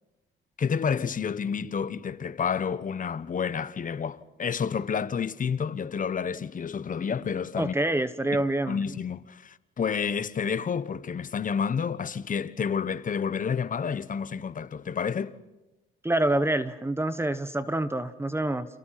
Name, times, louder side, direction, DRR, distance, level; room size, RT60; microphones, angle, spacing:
voice 1, 0.6-7.8 8.7-15.3, left 6 dB, 40° left, 1.3 m, -29 dB
voice 2, 7.6-8.8 16.0-18.7, right 1 dB, 10° right, 1.2 m, -26 dB
29.5 x 28.0 x 5.9 m
cardioid pair, 90°, 20 cm